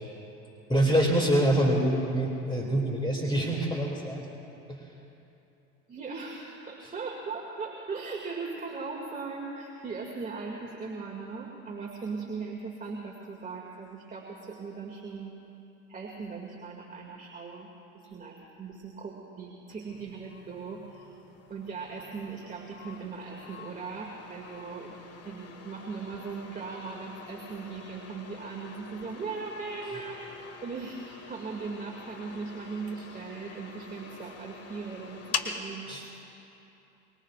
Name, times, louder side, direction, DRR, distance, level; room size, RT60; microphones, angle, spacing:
voice 1, 0.7-4.3 4.7-4.9 6.8-6.9 35.9-36.1, right 1 dB, 15° left, -1 dB, 2.6 m, -26 dB
voice 2, 5.9-15.3 15.9-17.7 18.1-21.1 21.5-24.9 25.2-36.0, right 4 dB, 25° right, -1 dB, 2.3 m, -39 dB
sound 1, 19.9-35.6, left 6 dB, 45° left, 1.7 m, -44 dB
24.5 x 23.5 x 2.5 m, 2.9 s
hypercardioid pair, 75°, 35 cm